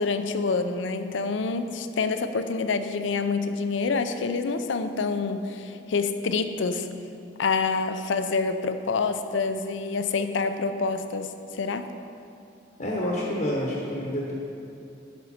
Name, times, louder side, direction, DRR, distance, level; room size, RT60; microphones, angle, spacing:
voice 1, 0.0-6.9 7.4-11.9, left 4 dB, 80° left, 9 dB, 0.5 m, -27 dB
voice 2, 12.8-14.3, left 1 dB, 45° left, -3 dB, 0.9 m, -28 dB
11.5 x 5.2 x 4.3 m, 2.7 s
head